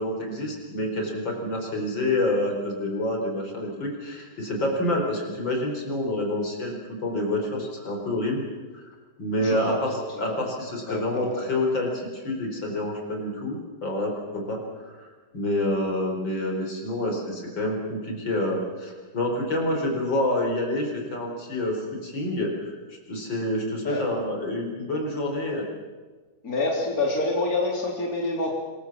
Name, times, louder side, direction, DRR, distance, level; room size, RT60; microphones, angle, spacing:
voice 1, 0.0-8.4 8.7-8.9 9.2-14.6 14.9-25.7, left 1 dB, 70° left, 2 dB, 5.3 m, -28 dB
voice 2, 9.4-10.4 10.9-11.5 23.8-24.1 26.4-28.5, left 2 dB, 45° left, -1 dB, 3.9 m, -28 dB
26.0 x 22.0 x 7.5 m, 1.4 s
omnidirectional pair, 2.1 m